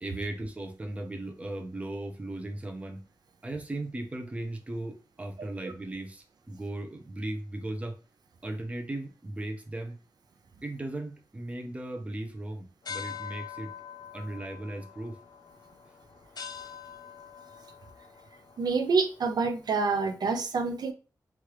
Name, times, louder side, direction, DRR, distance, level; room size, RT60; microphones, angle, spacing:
voice 1, 0.0-3.0 3.4-8.0 8.4-10.0 10.6-13.7 14.1-15.2, right 1 dB, 20° right, 0.5 m, -37 dB
sound 1, 12.8-19.7, left 7 dB, 75° left, 0.5 m, -44 dB
voice 2, 18.6-20.9, right 4 dB, 80° right, 0.4 m, -27 dB
3.1 x 2.4 x 3.0 m
wide cardioid pair, 150°, 7 cm